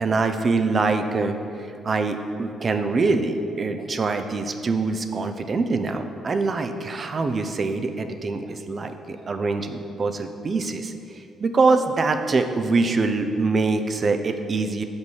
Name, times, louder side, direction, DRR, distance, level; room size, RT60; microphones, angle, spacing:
voice 1, 0.0-14.8, right 3 dB, 40° right, 7 dB, 0.5 m, -24 dB
5.4 x 5.2 x 6.3 m, 2.6 s
cardioid pair, 90°, 0 cm